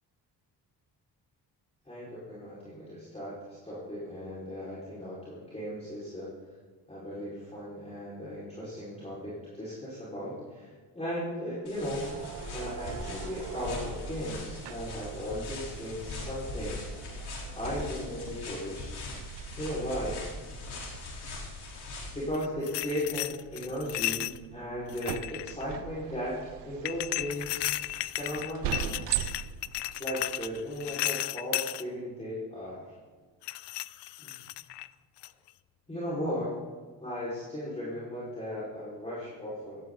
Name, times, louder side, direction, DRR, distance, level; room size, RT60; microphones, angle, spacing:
voice 1, 1.9-6.3 6.9-12.0 12.5-16.8 17.5-19.0 19.6-20.3 22.1-24.3 24.5-26.4 26.7-27.7 28.1-29.3 30.0-32.9 34.2-34.3 35.9-36.5 37.0-39.8, equal, 15° left, -9 dB, 5.4 m, -36 dB
sound 1, 11.6-22.3, left 2 dB, 70° left, 4.5 m, -40 dB
sound 2, 12.0-30.9, right 12 dB, 90° right, 0.8 m, -42 dB
sound 3, 22.3-24.4 24.9-25.6 26.8-31.8 33.4-34.9 35.2-35.5, left 17 dB, 90° left, 0.6 m, -34 dB
17.0 x 16.0 x 4.1 m, 1.4 s
cardioid pair, 105°, 41 cm